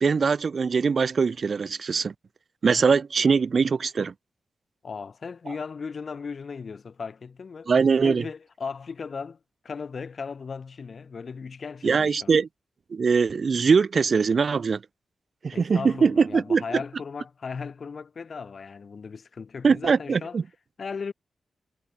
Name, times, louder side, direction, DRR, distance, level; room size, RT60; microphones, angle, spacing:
voice 1, 0.0-2.1 2.6-4.1 7.7-8.2 11.8-12.5 12.9-14.8 15.4-16.6 19.6-20.4, right 5 dB, 45° right, 0.4 m, -22 dB
voice 2, 4.8-7.7 8.0-12.3 15.5-20.4 20.8-21.1, left 5 dB, 45° left, 1.9 m, -37 dB
wide cardioid pair, 160°, 0 cm